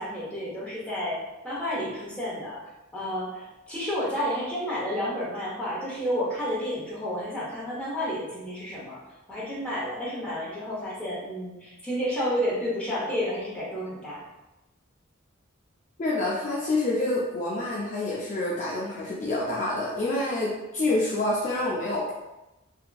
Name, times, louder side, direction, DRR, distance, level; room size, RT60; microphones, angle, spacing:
voice 1, 0.0-2.6 2.9-9.0 9.3-14.2, equal, 5° left, -8 dB, 0.7 m, -31 dB
voice 2, 16.0-22.1, left 2 dB, 35° left, -5 dB, 0.4 m, -27 dB
2.7 x 2.5 x 2.2 m, 1.0 s
head